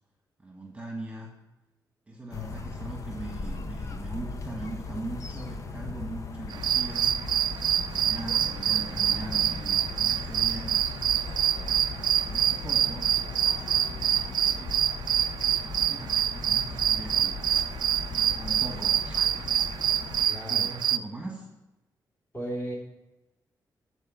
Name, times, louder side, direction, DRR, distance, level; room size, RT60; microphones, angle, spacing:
voice 1, 0.4-1.3 2.1-7.2 7.7-10.8 12.0-13.1 14.2-14.8 15.6-17.7 18.0-19.3 20.5-21.5, right 2 dB, 15° right, 0 dB, 1.7 m, -40 dB
sound 1, 2.3-20.3, left 3 dB, 45° left, 0.9 m, -38 dB
sound 2, 6.5-21.0, right 10 dB, 75° right, 0.4 m, -26 dB
sound 3, 6.9-14.4, left 4 dB, 80° left, 1.1 m, -48 dB
voice 2, 20.3-20.7 22.3-22.7, right 1 dB, 25° left, -3 dB, 3.7 m, -34 dB
13.5 x 4.7 x 7.0 m, 1.0 s
cardioid pair, 110°, 7 cm